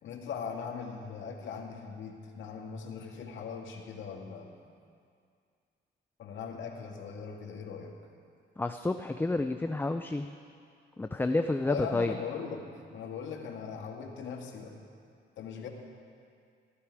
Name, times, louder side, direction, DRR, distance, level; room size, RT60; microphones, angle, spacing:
voice 1, 0.0-4.5 6.2-7.9 11.6-14.8 15.4-15.7, left 6 dB, 75° left, 1 dB, 1.9 m, -40 dB
voice 2, 8.6-10.3 11.0-12.1, left 2 dB, 10° left, 7 dB, 0.4 m, -30 dB
14.5 x 14.0 x 4.8 m, 2.3 s
cardioid pair, 90°, 20 cm